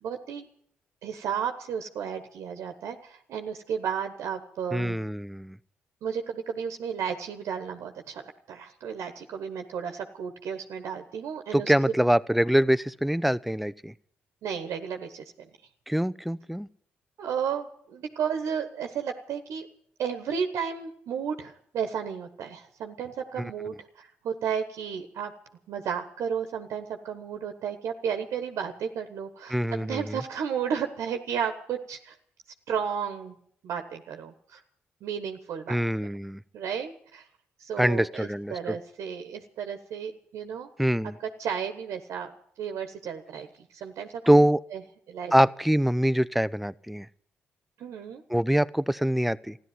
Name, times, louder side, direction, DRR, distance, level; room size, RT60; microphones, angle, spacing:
voice 1, 0.0-0.5 1.0-5.0 6.0-12.0 14.4-15.5 17.2-19.7 20.0-25.3 25.7-32.1 32.7-33.4 33.6-34.6 35.0-35.8 36.5-37.3 37.6-40.7 41.4-42.3 42.6-43.5 43.7-44.1 44.7-44.8 45.1-45.3 47.8-48.2, right 7 dB, 75° right, 6 dB, 1.3 m, -33 dB
voice 2, 4.7-5.6 11.5-13.9 15.9-16.7 29.5-30.2 35.7-36.4 37.8-38.8 40.8-41.1 44.3-44.6 45.3-47.1 48.3-49.6, equal, ahead, 17 dB, 0.6 m, -24 dB
13.5 x 11.5 x 9.2 m, 0.64 s
supercardioid pair, 50°, 5 cm